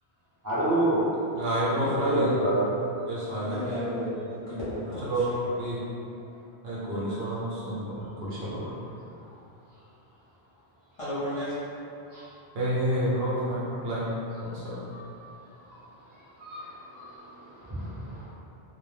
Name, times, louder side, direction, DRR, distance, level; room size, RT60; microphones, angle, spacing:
voice 1, 0.4-1.1 1.7-2.7 12.1-12.2 14.9-15.0 16.4-16.7 16.9-17.0 17.7-18.2, right 1 dB, 20° right, -12 dB, 0.8 m, -27 dB
voice 2, 1.3-2.4 3.1-3.6 5.1-5.2 5.6-5.8 6.6-8.8 12.5-14.1 14.4-14.8, right 1 dB, 70° right, -7 dB, 0.8 m, -29 dB
voice 3, 3.4-5.2 11.0-11.5, equal, 35° left, -13 dB, 0.8 m, -33 dB
2.2 x 2.1 x 3.2 m, 2.7 s
omnidirectional pair, 1.1 m